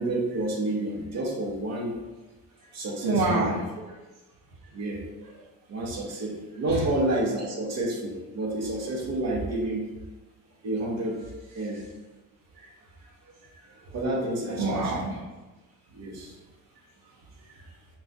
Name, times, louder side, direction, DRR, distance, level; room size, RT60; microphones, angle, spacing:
voice 1, 0.0-2.0 2.7-3.6 4.7-5.0 5.7-9.9 10.6-11.2 11.5-11.8 13.3-13.4 13.9-15.1 15.9-16.3, right 1 dB, 50° right, -1 dB, 0.8 m, -29 dB
voice 2, 3.0-3.5 4.6-4.7 5.2-5.4 6.7-6.9 11.6-11.9 12.5-13.1 13.4-13.9 14.4-15.3 16.7-17.7, right 2 dB, 80° right, -6 dB, 0.7 m, -31 dB
2.3 x 2.2 x 3.8 m, 1.1 s
cardioid pair, 105°, 35 cm